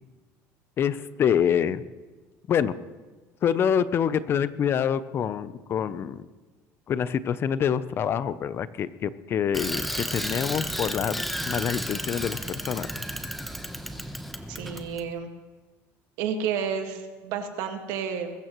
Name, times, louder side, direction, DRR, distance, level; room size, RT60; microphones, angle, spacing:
voice 1, 0.8-1.8 2.5-2.7 3.4-6.3 6.9-12.9, left 8 dB, 40° left, 15 dB, 0.6 m, -26 dB
Bicycle, 9.5-15.0, equal, ahead, 0.9 m, -33 dB
voice 2, 14.5-15.3 16.2-18.3, right 7 dB, 75° right, 5 dB, 1.8 m, -31 dB
22.0 x 14.0 x 3.1 m, 1.3 s
cardioid pair, 125°, 6 cm